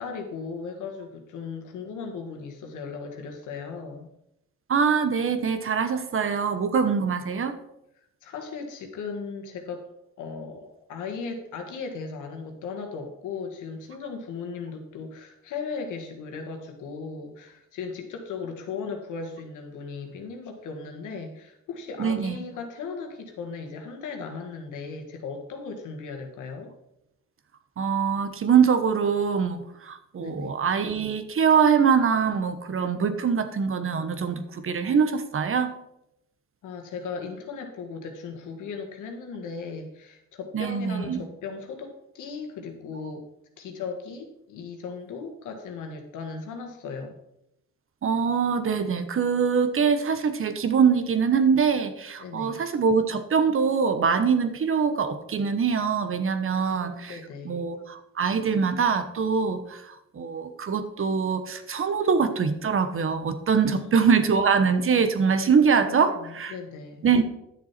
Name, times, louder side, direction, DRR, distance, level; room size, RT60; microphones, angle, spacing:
voice 1, 0.0-4.1 8.2-9.9 10.2-26.7 30.2-30.6 36.6-43.3 43.6-47.2 52.2-52.6 56.4-57.7 63.7-64.3 65.4-67.0, left 5 dB, 80° left, 4 dB, 1.8 m, -37 dB
voice 2, 4.7-7.6 22.0-22.3 27.8-35.8 40.5-41.2 48.0-57.2 57.4-66.5 67.0-67.2, right 6 dB, 45° right, 10 dB, 1.1 m, -23 dB
10.5 x 6.9 x 4.3 m, 0.82 s
cardioid pair, 90°, 30 cm